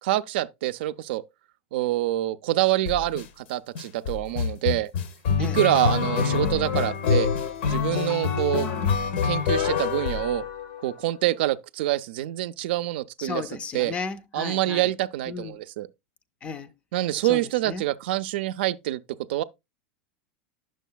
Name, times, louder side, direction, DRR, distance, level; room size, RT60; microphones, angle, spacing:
voice 1, 0.0-1.2 1.7-4.9 5.4-7.3 7.7-8.7 9.2-10.4 10.8-13.4 13.7-13.9 14.3-15.9 16.9-19.0 19.3-19.4, right 15 dB, 65° right, 0.4 m, -26 dB
sound 1, 2.9-3.2 3.8-10.9, left 6 dB, 75° left, 0.7 m, -26 dB
voice 2, 13.2-14.9 15.3-15.6 16.4-16.7 17.2-17.9, left 5 dB, 20° left, 0.3 m, -35 dB
9.0 x 6.3 x 2.2 m
supercardioid pair, 165°, 6 cm